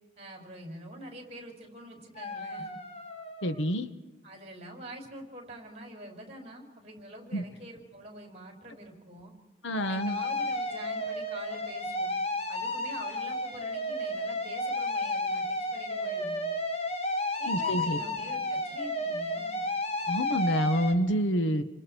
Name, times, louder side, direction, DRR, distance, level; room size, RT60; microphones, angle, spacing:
voice 1, 0.2-2.7 4.2-9.3 9.8-12.2 12.5-16.4 17.4-19.6, right 1 dB, 35° right, 2 dB, 5.8 m, -46 dB
sound 1, 2.2-3.6 9.8-20.9, left 1 dB, 30° left, 1.8 m, -32 dB
voice 2, 3.4-3.9 7.3-7.4 9.6-10.2 17.4-18.0 20.1-21.6, equal, 75° left, 10 dB, 1.3 m, -27 dB
29.5 x 25.5 x 4.6 m, 1.1 s
head